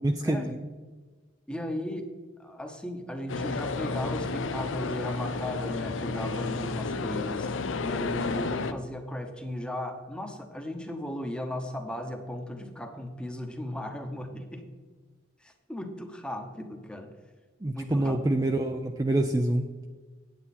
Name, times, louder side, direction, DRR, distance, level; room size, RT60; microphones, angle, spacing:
voice 1, 0.0-0.7 17.6-19.7, right 1 dB, 20° right, 4 dB, 0.4 m, -26 dB
voice 2, 1.5-2.1 2.4-7.5 7.8-14.6 15.4-17.2 17.7-18.2, left 1 dB, 5° left, 5 dB, 0.9 m, -36 dB
sound 1, 3.3-8.7, left 3 dB, 75° left, 0.6 m, -31 dB
9.3 x 8.6 x 4.2 m, 1.4 s
head